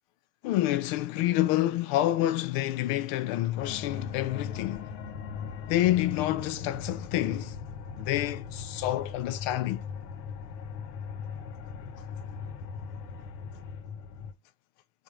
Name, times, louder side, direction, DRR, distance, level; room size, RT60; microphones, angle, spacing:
voice 1, 0.4-4.9 5.7-7.6 8.0-9.8, left 14 dB, 55° left, 0.5 m, -28 dB
sound 1, 3.6-14.3, left 6 dB, 85° left, 0.8 m, -39 dB
4.4 x 2.1 x 3.6 m
supercardioid pair, 120°, 46 cm